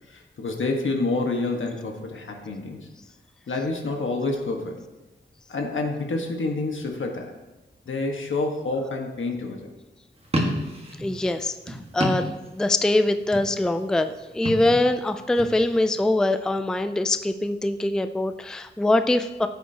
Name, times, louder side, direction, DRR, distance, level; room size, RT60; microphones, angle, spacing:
voice 1, 0.1-2.9 3.5-4.8 5.5-7.3 7.8-9.7, left 3 dB, 80° left, 2 dB, 1.5 m, -28 dB
sound 1, 10.2-12.9 13.1-13.7 14.3-15.6, equal, 30° right, 1.6 m, -29 dB
voice 2, 11.0-19.5, left 2 dB, 5° left, 10 dB, 0.4 m, -23 dB
14.5 x 8.3 x 2.9 m, 1.1 s
wide cardioid pair, 120°, 20 cm